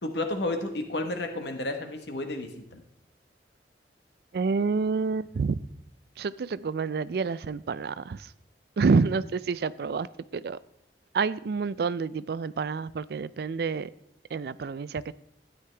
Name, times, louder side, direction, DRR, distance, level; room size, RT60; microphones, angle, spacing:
voice 1, 0.0-2.8, left 2 dB, 75° left, 6 dB, 1.2 m, -32 dB
voice 2, 4.3-5.6 6.2-8.3 8.8-10.1 10.3-10.6 11.1-13.9 14.3-15.1, right 4 dB, 60° right, 17 dB, 0.4 m, -28 dB
13.0 x 9.3 x 3.4 m, 0.75 s
head